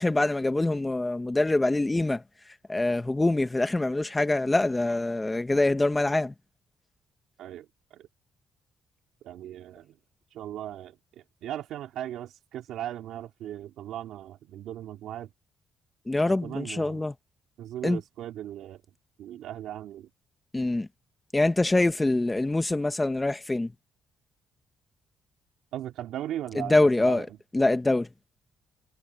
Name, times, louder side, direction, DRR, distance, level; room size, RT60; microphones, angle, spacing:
voice 1, 0.0-2.2 2.7-6.3 16.1-17.1 17.8-18.0 20.5-20.9 21.3-23.7 26.5-27.3 27.5-28.1, left 2 dB, 15° left, 1.2 m, -24 dB
voice 2, 9.2-9.9 10.3-10.9 11.4-15.3 16.4-17.1 17.6-18.8 19.2-20.1 25.7-27.2, right 12 dB, 85° right, 2.5 m, -37 dB
cardioid pair, 90°, 0 cm